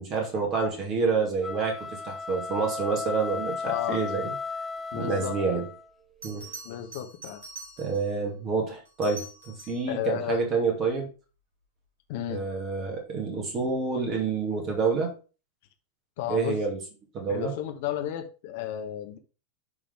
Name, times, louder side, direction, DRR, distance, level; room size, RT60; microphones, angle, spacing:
voice 1, 0.0-4.3 4.9-5.6 6.2-6.5 7.8-11.1 12.3-15.1 16.3-16.8 17.1-17.5, right 4 dB, 30° right, 2.2 m, -28 dB
sound 1, 1.3-5.9, left 4 dB, 10° left, 0.8 m, -35 dB
voice 2, 3.6-4.0 4.9-5.6 6.6-7.4 9.9-10.4 12.1-12.4 16.2-16.5 17.3-19.2, left 11 dB, 50° left, 1.2 m, -33 dB
Bell, 6.2-8.2 8.8-9.9 12.6-12.9, right 2 dB, 65° right, 3.8 m, -44 dB
10.5 x 3.8 x 3.5 m
figure-of-eight pair, 90°, 0 cm